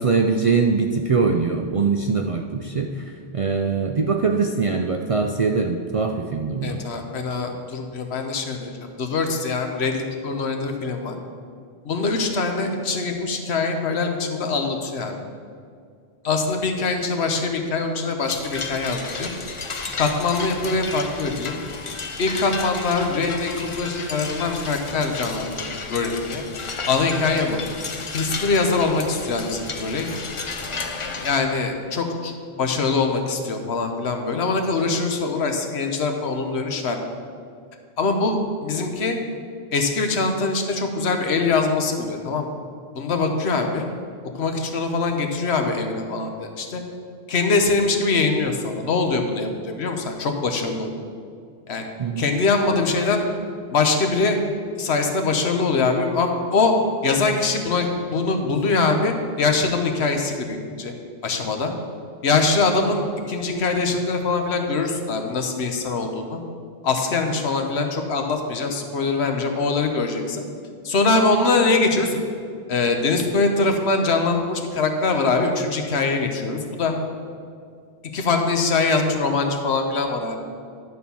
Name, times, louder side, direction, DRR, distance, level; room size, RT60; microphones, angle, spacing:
voice 1, 0.0-6.8 52.0-52.3, right 4 dB, 50° right, 3 dB, 0.4 m, -22 dB
voice 2, 6.6-8.7 9.0-11.2 11.8-15.2 16.2-19.3 20.0-21.6 22.2-23.5 23.8-26.4 26.9-27.6 28.1-30.1 30.6-37.0 38.0-39.2 39.7-42.5 43.0-43.9 44.4-46.8 47.3-50.9 51.7-51.8 52.2-53.2 53.7-54.4 54.8-56.7 57.0-60.9 61.2-61.7 62.2-66.4 66.8-70.4 70.8-72.2 72.7-76.9 78.1-80.4, left 3 dB, 80° left, 4 dB, 1.2 m, -23 dB
sound 1, 18.2-31.4, left 4 dB, 35° left, 0.5 m, -33 dB
11.0 x 4.4 x 6.9 m, 2.2 s
omnidirectional pair, 1.1 m